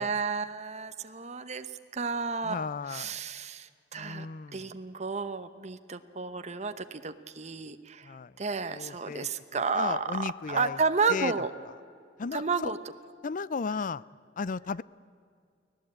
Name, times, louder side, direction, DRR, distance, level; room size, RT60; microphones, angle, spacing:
voice 1, 0.0-1.7 1.9-4.3 4.5-11.5 12.3-12.8, right 4 dB, 40° right, 9 dB, 0.9 m, -32 dB
voice 2, 2.4-3.2 3.9-4.7 8.0-8.3 8.7-10.8 11.1-11.3 12.2-12.7 13.2-14.0 14.4-14.8, left 4 dB, 45° left, 20 dB, 0.5 m, -35 dB
24.5 x 17.0 x 8.7 m, 2.3 s
head